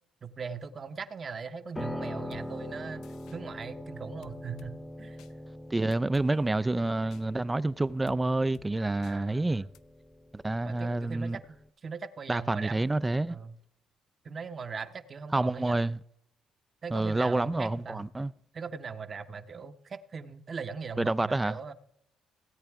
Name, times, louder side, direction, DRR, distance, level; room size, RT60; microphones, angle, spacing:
voice 1, 0.2-3.0 3.3-5.2 9.1-9.7 10.6-11.4 11.8-13.6 14.2-15.8 16.8-18.0 18.5-21.7, right 5 dB, 40° right, 0.8 m, -40 dB
Piano, 1.8-11.7, left 1 dB, 10° left, 0.8 m, -43 dB
sound 1, 2.3-2.5 3.0-3.4 4.2-4.7 5.2-5.3 5.9-6.3 7.1-7.2 8.1-8.2 8.5-8.7 9.0-9.2 9.7-9.8, left 11 dB, 80° left, 0.4 m, -52 dB
voice 2, 5.7-9.7 10.3-11.4 12.3-13.4 15.3-16.0 16.9-18.3 21.0-21.6, right 2 dB, 15° right, 0.3 m, -28 dB
17.0 x 8.8 x 3.4 m
cardioid pair, 95°, 0 cm